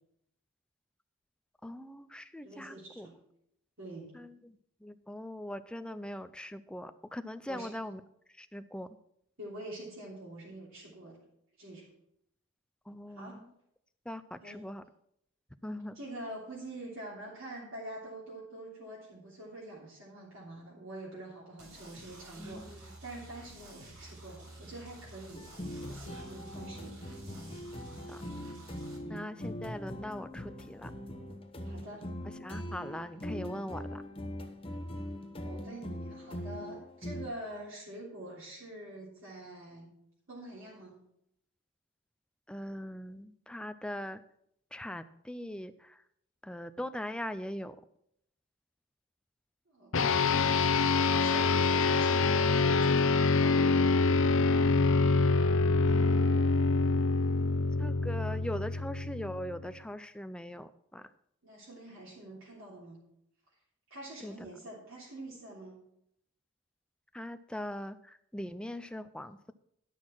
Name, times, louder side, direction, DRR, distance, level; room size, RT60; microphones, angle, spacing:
voice 1, 1.6-3.1 4.1-4.3 4.8-8.0 8.4-8.9 12.9-13.4 14.1-14.8 15.6-16.0 22.4-22.6 28.1-28.2 29.1-30.9 32.4-34.0 42.5-44.2 44.7-46.0 46.4-47.8 55.9-56.5 57.8-61.1 64.2-64.3 67.1-69.5, left 1 dB, 5° left, 11 dB, 0.4 m, -41 dB
voice 2, 2.4-3.2 3.8-4.1 7.5-7.7 9.4-11.2 11.6-11.9 13.1-13.4 14.4-14.7 15.9-25.4 25.9-27.0 29.0-29.4 31.6-32.1 35.4-39.9 40.3-41.0 49.7-50.4 51.0-53.8 61.4-63.0 63.9-65.8, right 1 dB, 60° right, -7 dB, 3.3 m, -46 dB
sound 1, 21.6-29.0, right 2 dB, 85° right, 3.6 m, -51 dB
sound 2, 25.3-37.3, equal, 25° left, 0.9 m, -41 dB
sound 3, 49.9-59.6, left 4 dB, 65° left, 0.7 m, -26 dB
11.5 x 6.3 x 6.0 m, 0.74 s
head